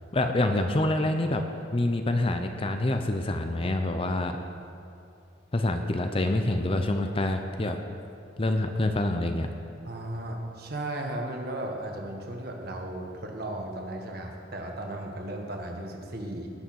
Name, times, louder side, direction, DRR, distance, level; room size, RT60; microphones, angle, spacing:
voice 1, 0.1-1.4 1.7-4.4 5.5-7.8 8.4-9.5, left 1 dB, 30° left, 6 dB, 0.6 m, -26 dB
voice 2, 9.8-16.5, right 1 dB, 50° right, 2 dB, 1.6 m, -35 dB
18.5 x 6.4 x 6.3 m, 2.6 s
head